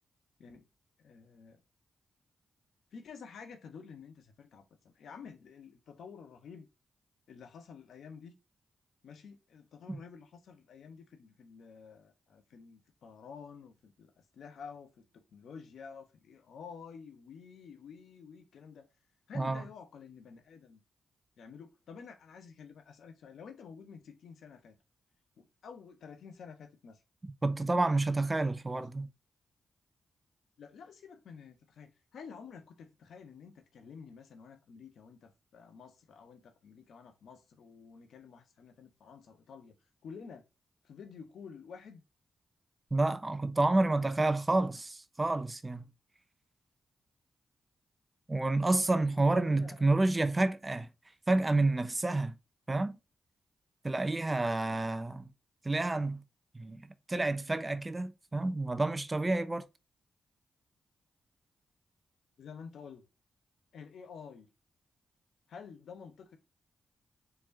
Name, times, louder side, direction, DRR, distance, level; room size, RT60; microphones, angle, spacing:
voice 1, 1.0-1.6 2.9-6.7 7.3-8.3 9.0-18.9 19.3-20.8 21.4-24.8 25.4-27.0 30.6-39.7 40.0-40.4 40.8-42.0 48.8-49.8 62.4-63.0 63.7-64.5 65.5-66.4, left 6 dB, 75° left, 1.1 m, -50 dB
voice 2, 27.2-29.1 42.9-45.8 48.3-50.9 51.3-52.3 52.7-53.0 53.8-55.3 55.6-56.2 56.5-59.7, right 2 dB, 30° right, 0.8 m, -29 dB
4.5 x 4.2 x 2.7 m
supercardioid pair, 45°, 0 cm